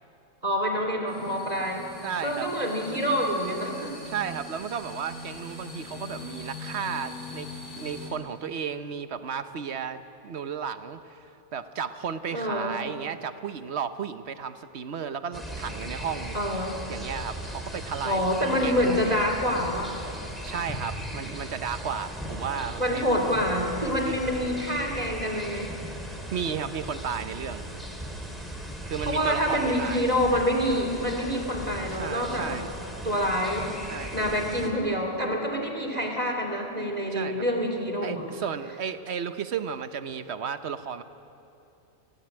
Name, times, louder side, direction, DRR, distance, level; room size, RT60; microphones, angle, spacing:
voice 1, 0.4-1.9 2.2-3.9 12.3-12.8 16.3-16.8 18.0-19.9 22.8-25.7 29.0-32.6 33.0-33.7 34.1-38.3, equal, 35° right, 2 dB, 3.0 m, -27 dB
sound 1, 1.1-8.1, left 2 dB, 40° left, 3.9 m, -41 dB
voice 2, 2.0-2.5 3.8-7.5 7.7-16.4 16.9-18.3 18.6-19.2 20.0-20.1 20.4-23.1 23.8-24.1 26.3-27.6 28.8-30.0 31.9-32.6 33.9-34.2 37.1-37.4 38.0-41.0, right 7 dB, 70° right, 11 dB, 1.2 m, -34 dB
sound 2, 15.3-34.7, right 1 dB, ahead, 3.2 m, -37 dB
24.0 x 17.0 x 8.9 m, 2.8 s
omnidirectional pair, 1.2 m